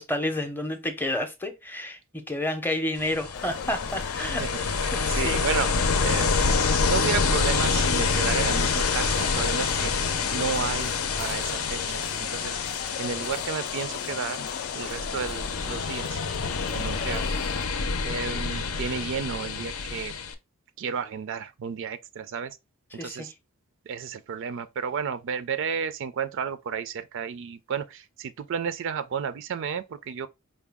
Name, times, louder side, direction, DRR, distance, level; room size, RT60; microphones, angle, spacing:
voice 1, 0.0-4.4 4.7-5.4 23.0-23.3, left 1 dB, 10° left, 0.6 m, -30 dB
Ocean, 3.0-20.3, left 5 dB, 90° left, 0.6 m, -27 dB
sound 1, 3.3-17.6, left 7 dB, 60° left, 0.3 m, -37 dB
voice 2, 4.2-4.5 4.8-5.7 6.0-9.9 10.3-12.6 13.0-14.5 14.7-16.2 16.7-17.3 18.0-20.1 20.8-22.6 23.0-23.3 23.9-30.3, right 6 dB, 60° right, 0.4 m, -32 dB
4.7 x 2.2 x 3.4 m
head